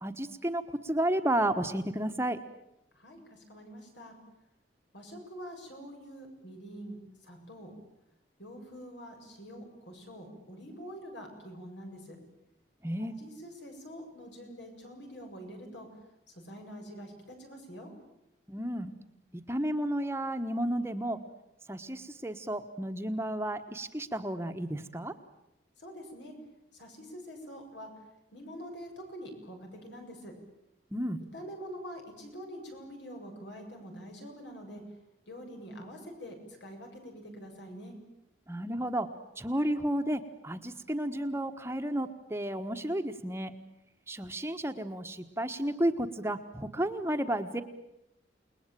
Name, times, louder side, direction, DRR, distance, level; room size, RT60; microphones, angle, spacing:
voice 1, 0.0-2.4 12.8-13.1 18.5-18.9 19.5-21.2 21.7-25.1 30.9-31.2 38.5-39.1 39.4-43.5 44.1-47.6, right 1 dB, 15° right, 7 dB, 1.3 m, -32 dB
voice 2, 2.9-4.1 4.9-7.7 8.4-12.2 13.0-15.9 16.3-17.9 25.8-26.3 26.7-27.9 28.3-30.3 31.3-34.8 35.3-38.0, equal, 80° left, 3 dB, 7.5 m, -45 dB
29.5 x 20.0 x 9.1 m, 0.86 s
head